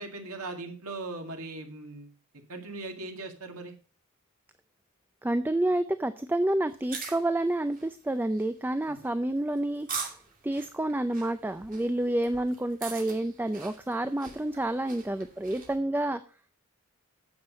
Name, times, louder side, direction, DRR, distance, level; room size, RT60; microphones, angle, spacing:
voice 1, 0.0-2.1 2.5-3.7 8.8-9.0, right 2 dB, 80° right, 3 dB, 2.3 m, -39 dB
voice 2, 5.2-9.9 10.4-16.2, right 1 dB, 10° right, 11 dB, 0.4 m, -29 dB
sound 1, 6.7-15.8, right 5 dB, 40° right, 2.6 m, -43 dB
9.6 x 7.3 x 5.2 m, 0.38 s
head